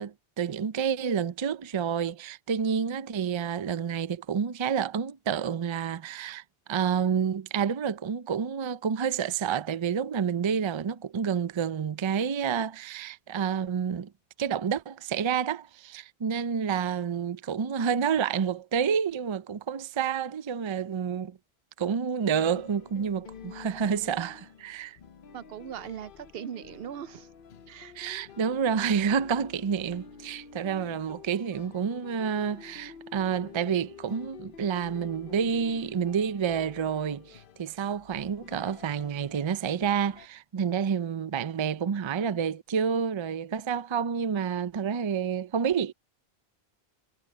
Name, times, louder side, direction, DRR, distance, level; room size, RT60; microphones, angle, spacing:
voice 1, 0.0-6.4 6.7-14.1 14.4-21.4 21.8-25.0 27.9-45.9, right 7 dB, 40° right, 0.4 m, -29 dB
sound 1, 22.3-40.3, left 7 dB, 55° left, 1.0 m, -49 dB
voice 2, 25.3-27.3 27.7-27.9, right 9 dB, 70° right, 0.7 m, -39 dB
omnidirectional pair, 1.1 m